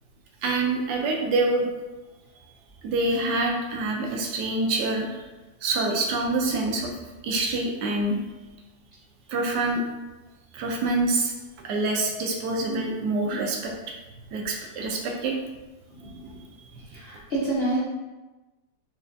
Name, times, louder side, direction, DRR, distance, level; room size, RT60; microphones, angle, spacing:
voice 1, 0.4-1.7 2.8-5.2 5.6-6.9 7.2-8.2 9.3-9.8 10.5-11.3 11.6-13.7 14.3-15.3, right 2 dB, 75° right, 1 dB, 1.2 m, -26 dB
voice 2, 15.9-16.3 16.9-17.8, right 2 dB, 90° left, -6 dB, 0.5 m, -28 dB
4.4 x 2.3 x 2.5 m, 1.1 s
omnidirectional pair, 1.9 m